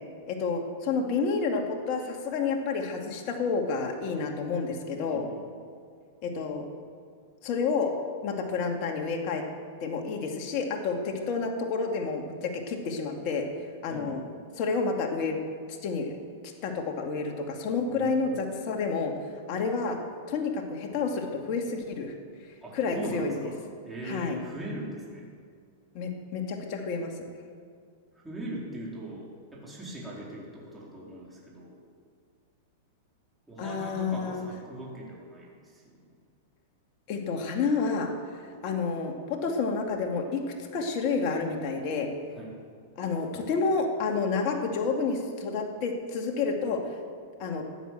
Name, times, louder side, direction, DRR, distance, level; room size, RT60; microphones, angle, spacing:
voice 1, 0.3-5.2 6.2-6.7 7.4-7.9 8.2-9.4 9.8-13.4 13.8-14.2 14.6-15.4 15.8-16.2 16.6-19.1 19.5-20.0 20.3-22.1 22.7-23.4 24.0-24.4 25.9-27.3 33.6-34.4 37.1-38.1 38.3-42.1 43.0-46.8 47.4-47.6, left 4 dB, 50° left, 2 dB, 2.4 m, -29 dB
voice 2, 17.9-18.4 22.6-23.5 23.8-25.3 28.2-31.8 33.5-35.8 42.3-42.5, right 1 dB, 10° right, -6 dB, 4.4 m, -40 dB
14.5 x 9.7 x 7.7 m, 2.2 s
hypercardioid pair, 120°, 0 cm